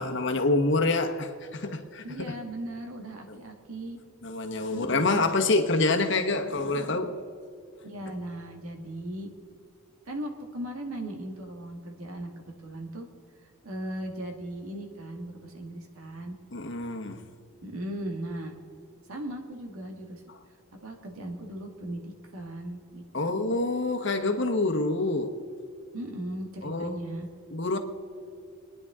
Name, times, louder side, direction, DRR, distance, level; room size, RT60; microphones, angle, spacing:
voice 1, 0.0-2.3 3.3-3.4 4.2-7.2 16.5-17.2 23.1-25.4 26.6-27.0 27.5-27.8, left 2 dB, 55° left, 1.2 m, -27 dB
voice 2, 2.0-4.0 4.7-5.2 7.8-9.3 10.1-13.1 13.6-16.4 17.6-18.5 19.1-20.2 20.7-23.6 25.9-27.3, right 1 dB, 75° right, 1.9 m, -38 dB
26.5 x 10.0 x 3.7 m
head